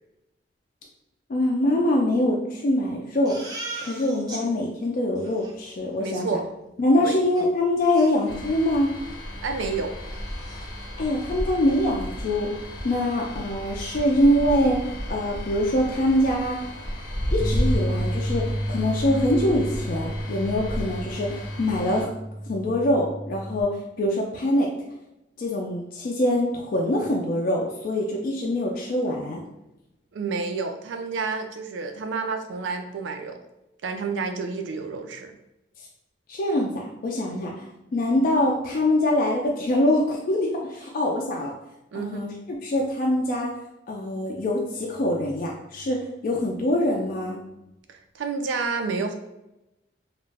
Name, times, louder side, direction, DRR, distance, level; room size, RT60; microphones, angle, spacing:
voice 1, 1.3-3.4 3.8-6.3 6.8-8.9 11.0-12.5 12.8-16.6 17.3-22.1 22.5-24.7 25.4-29.4 36.3-37.7 37.9-41.5 41.9-42.3 42.6-43.5 43.9-47.4, left 1 dB, 50° left, -1 dB, 0.3 m, -24 dB
Crying sobbing, 3.3-4.4 4.8-4.9 5.2-5.5 7.4-7.5 7.9-8.7 9.1-9.2 9.6-9.7 10.0-10.7, right 2 dB, 20° right, 0.4 m, -39 dB
voice 2, 6.0-6.4 7.0-7.2 9.4-10.0 30.1-33.4 33.8-35.3 41.9-42.2 47.9-49.2, right 4 dB, 90° right, 6 dB, 0.4 m, -29 dB
sound 1, 8.3-22.0, equal, 90° left, 0.7 m, -33 dB
sound 2, 17.4-23.6, equal, 10° left, 0.8 m, -31 dB
2.4 x 2.0 x 3.3 m, 0.92 s
head